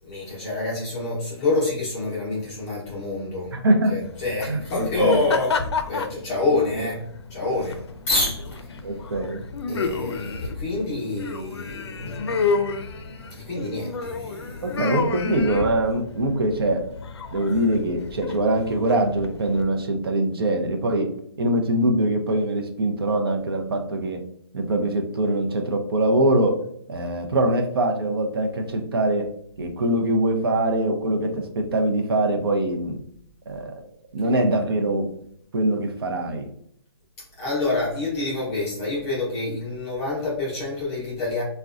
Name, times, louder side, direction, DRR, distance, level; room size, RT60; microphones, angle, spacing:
voice 1, 0.0-3.5 3.9-5.6 5.9-7.0 7.3-7.8 8.1-8.6 9.7-12.4 13.4-14.9 37.4-41.4, left 2 dB, 10° left, -6 dB, 0.6 m, -27 dB
voice 2, 3.5-3.9 4.5-5.2 8.8-9.4 14.6-16.8 17.3-21.1 21.4-24.2 24.5-26.6 26.9-29.3 29.6-33.0 33.5-33.7 34.1-35.1 35.5-36.5, right 1 dB, 60° right, 4 dB, 0.6 m, -23 dB
sound 1, 4.0-19.6, left 4 dB, 75° left, 0.4 m, -31 dB
3.6 x 2.2 x 2.4 m, 0.66 s
hypercardioid pair, 175°, 14 cm